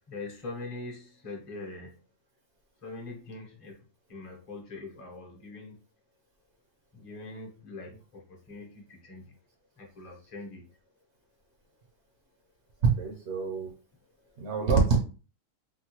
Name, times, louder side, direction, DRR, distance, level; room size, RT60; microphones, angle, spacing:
voice 1, 0.1-1.9 2.8-3.8 4.1-5.8 6.9-9.2 9.8-10.6, left 3 dB, 30° left, 0 dB, 0.8 m, -42 dB
voice 2, 13.0-13.7 14.4-15.0, right 4 dB, 65° right, 1 dB, 0.9 m, -26 dB
3.7 x 2.2 x 2.9 m, 0.35 s
omnidirectional pair, 1.3 m